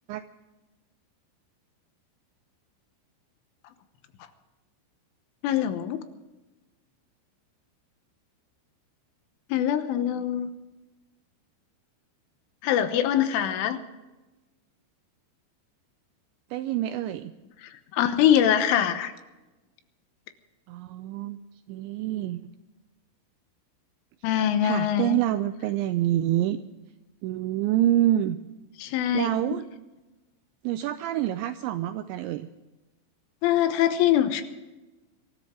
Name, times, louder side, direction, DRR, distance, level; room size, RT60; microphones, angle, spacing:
voice 1, 5.4-6.0 9.5-10.5 12.6-13.8 17.6-19.1 24.2-25.2 28.8-29.3 33.4-34.4, left 10 dB, 80° left, 9 dB, 3.5 m, -23 dB
voice 2, 16.5-17.3 20.7-21.4 21.7-22.4 24.6-26.6 27.2-28.4 29.1-29.6 30.6-32.5, right 13 dB, 85° right, 10 dB, 2.6 m, -26 dB
24.5 x 13.5 x 3.7 m, 1.1 s
omnidirectional pair, 5.8 m